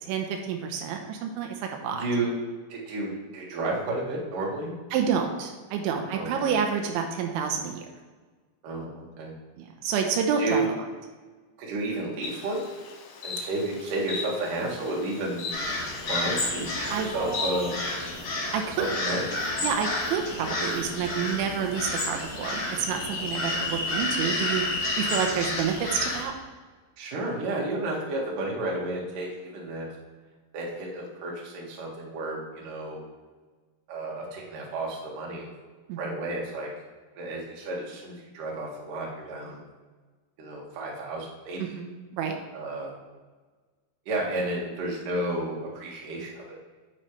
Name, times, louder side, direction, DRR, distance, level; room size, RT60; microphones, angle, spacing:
voice 1, 0.0-2.0 4.9-7.9 9.6-10.6 16.9-17.1 18.5-18.9 19.6-26.3 35.9-36.2 41.6-42.4, right 7 dB, 90° right, 3 dB, 3.2 m, -29 dB
voice 2, 1.9-2.4 2.7-4.7 6.1-6.5 8.6-9.3 10.4-10.7 11.6-12.6 13.2-15.4 16.1-17.7 18.8-19.2 27.0-29.9 30.5-33.0 33.9-35.5 36.0-36.7 37.2-39.6 40.4-41.8 42.5-42.9 44.1-46.6, right 2 dB, 55° right, -3 dB, 3.0 m, -32 dB
Insect, 12.2-18.1, left 4 dB, 70° left, 2.3 m, -37 dB
sound 1, 15.5-26.2, left 2 dB, 45° left, 3.0 m, -30 dB
9.9 x 8.7 x 3.2 m, 1.4 s
omnidirectional pair, 5.3 m